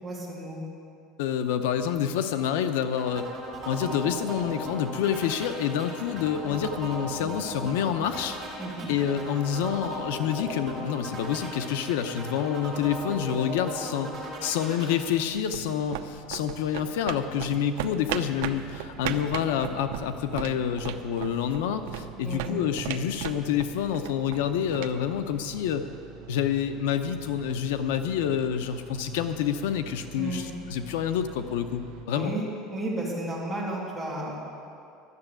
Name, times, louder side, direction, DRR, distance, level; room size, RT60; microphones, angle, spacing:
voice 1, 0.0-0.6 8.6-8.9 22.2-22.6 30.2-30.5 32.1-34.4, right 1 dB, ahead, -8 dB, 2.8 m, -33 dB
voice 2, 1.2-3.3 3.7-8.4 8.9-25.8 26.3-31.8 32.1-32.3, left 9 dB, 85° left, 9 dB, 0.7 m, -28 dB
sound 1, 3.0-15.0, right 1 dB, 20° right, 3.9 m, -37 dB
sound 2, 15.2-25.9, right 10 dB, 80° right, 0.6 m, -38 dB
sound 3, 18.2-32.1, right 7 dB, 60° right, 1.1 m, -46 dB
12.5 x 7.0 x 9.0 m, 2.5 s
cardioid pair, 180°, 0 cm